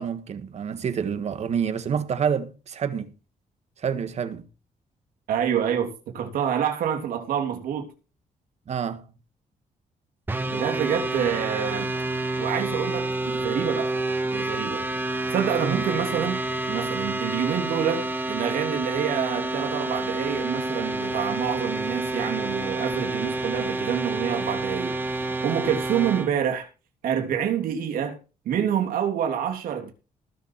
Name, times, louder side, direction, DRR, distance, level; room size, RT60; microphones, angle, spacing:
voice 1, 0.0-3.1 3.8-4.5 8.7-9.1 15.6-15.9, right 7 dB, 50° right, 1.7 m, -28 dB
voice 2, 5.3-7.9 10.5-11.9 12.4-13.9 14.3-14.9 15.3-16.4 16.7-25.0 25.4-26.7 27.0-28.2 28.4-29.9, right 8 dB, 90° right, 3.3 m, -27 dB
sound 1, 10.3-26.3, right 2 dB, 15° right, 1.5 m, -28 dB
19.0 x 7.2 x 4.7 m
cardioid pair, 140°, 14 cm